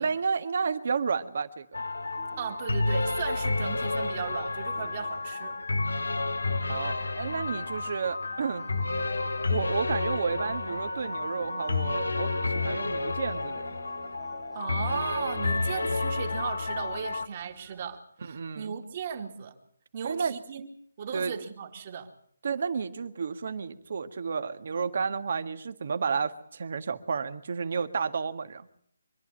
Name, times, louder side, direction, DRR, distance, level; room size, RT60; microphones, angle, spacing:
voice 1, 0.0-1.9 6.7-8.7 9.5-13.7 18.2-18.7 20.0-20.3 21.1-21.3 22.4-28.7, right 5 dB, 55° right, 10 dB, 1.7 m, -31 dB
sound 1, 1.7-17.3, left 3 dB, 90° left, 1.4 m, -30 dB
sound 2, 1.8-18.0, right 5 dB, 10° right, 1.9 m, -55 dB
voice 2, 2.3-5.6 14.5-19.5 19.9-20.7 21.0-22.1, right 7 dB, 40° right, 3 dB, 2.5 m, -36 dB
25.5 x 11.0 x 9.9 m, 0.66 s
hypercardioid pair, 155°, 0 cm